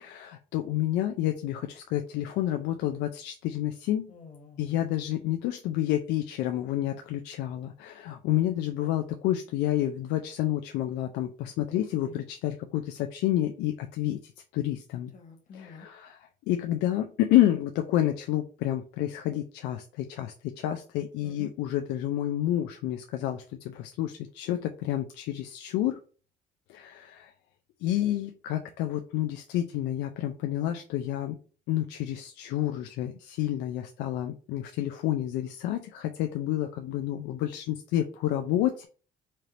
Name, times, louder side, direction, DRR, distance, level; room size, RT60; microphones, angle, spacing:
voice 1, 0.0-4.1 4.6-15.1 15.5-26.0 26.7-27.3 27.8-31.4 31.7-38.9, left 13 dB, 90° left, 6 dB, 0.4 m, -29 dB
voice 2, 4.1-4.8 11.6-12.2 15.1-15.9 21.2-21.5, left 5 dB, 50° left, 4 dB, 1.1 m, -48 dB
4.3 x 3.2 x 2.5 m, 0.38 s
cardioid pair, 110°, 17 cm